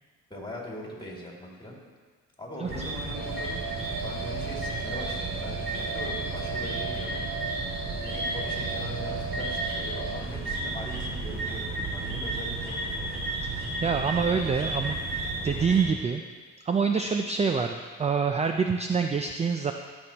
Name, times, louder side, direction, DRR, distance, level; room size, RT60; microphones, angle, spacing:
voice 1, 0.3-1.8 2.4-7.3 8.0-13.1, left 1 dB, 15° left, -3 dB, 2.5 m, -41 dB
sound 1, 2.7-15.8, right 2 dB, 45° right, 2.3 m, -33 dB
sound 2, 3.1-10.2, right 4 dB, 85° right, 1.7 m, -37 dB
voice 2, 13.4-15.0 15.4-16.2 16.6-19.7, right 5 dB, 20° right, 5 dB, 0.4 m, -26 dB
14.0 x 6.3 x 2.9 m, 1.5 s
cardioid pair, 90°, 30 cm